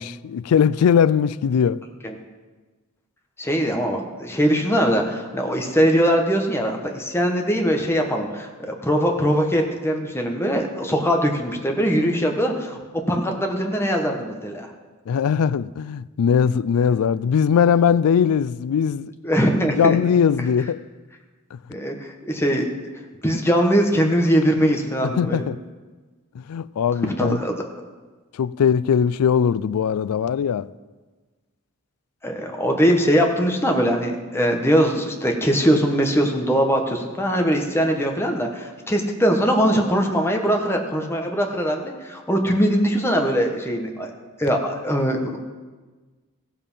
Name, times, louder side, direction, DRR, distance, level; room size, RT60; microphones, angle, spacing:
voice 1, 0.0-1.8 15.1-19.1 19.7-20.8 21.5-21.6 25.1-25.6 26.3-27.4 28.3-30.7, left 7 dB, 75° left, 0.3 m, -20 dB
voice 2, 3.4-12.8 13.1-14.7 19.2-20.0 21.7-22.7 23.2-25.4 27.2-27.5 32.2-44.1 44.4-45.4, equal, 10° left, 1.2 m, -21 dB
15.0 x 7.2 x 5.6 m
head